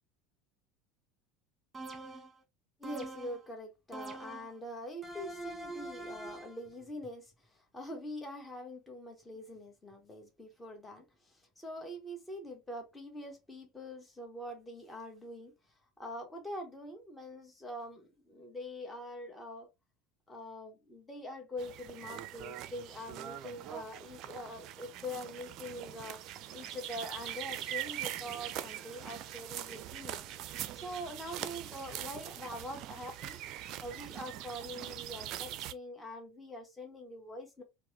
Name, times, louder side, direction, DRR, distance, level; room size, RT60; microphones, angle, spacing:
sound 1, 1.7-2.4 2.8-3.5 3.9-4.6 5.0-6.6, right 2 dB, 15° right, 1.5 m, -44 dB
voice 1, 2.8-15.5 16.0-19.7 20.3-26.2 26.5-33.4 33.8-37.6, left 1 dB, 15° left, 1.1 m, -44 dB
sound 2, 21.6-35.7, right 12 dB, 50° right, 0.4 m, -42 dB
4.4 x 2.0 x 2.7 m
figure-of-eight pair, 75°, 0 cm